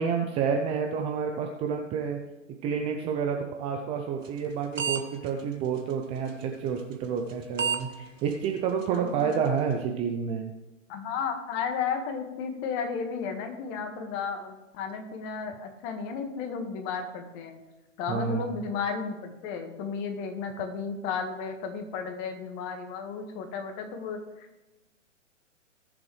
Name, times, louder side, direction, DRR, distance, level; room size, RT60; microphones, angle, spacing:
voice 1, 0.0-2.2 2.6-10.5 18.1-18.4, right 6 dB, 15° right, 3 dB, 0.6 m, -29 dB
sound 1, 4.2-4.5 4.8-5.0 5.3-5.4 6.3-6.4 7.3-7.4 7.6-7.8 8.3-8.4 8.8-8.9 9.3-9.4, right 6 dB, 80° right, 1.4 m, -28 dB
voice 2, 8.9-9.3 10.9-17.6 18.0-24.6, left 6 dB, 30° left, 5 dB, 1.8 m, -34 dB
19.0 x 7.1 x 3.3 m, 1.0 s
hypercardioid pair, 130°, 38 cm